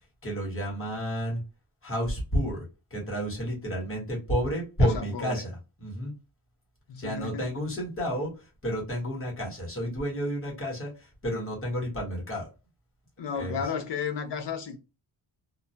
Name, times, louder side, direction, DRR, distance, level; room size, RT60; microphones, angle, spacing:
voice 1, 0.2-1.4 1.8-6.1 7.0-12.5 13.4-13.6, equal, 25° left, 1.1 m, -31 dB
voice 2, 4.8-5.4 6.9-7.5 13.2-14.8, left 6 dB, 55° left, 0.6 m, -33 dB
2.3 x 2.2 x 2.7 m
wide cardioid pair, 140°, 50 cm